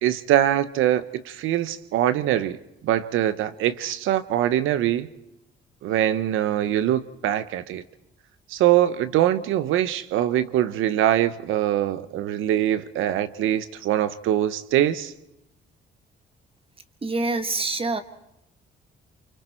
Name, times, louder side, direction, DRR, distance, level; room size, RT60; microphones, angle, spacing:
voice 1, 0.0-2.6 2.8-5.1 5.8-7.8 8.5-15.1, right 12 dB, 90° right, 14 dB, 0.8 m, -23 dB
voice 2, 17.0-18.0, right 3 dB, 30° right, 9 dB, 1.6 m, -25 dB
28.5 x 25.0 x 4.5 m, 0.88 s
cardioid pair, 90°, 20 cm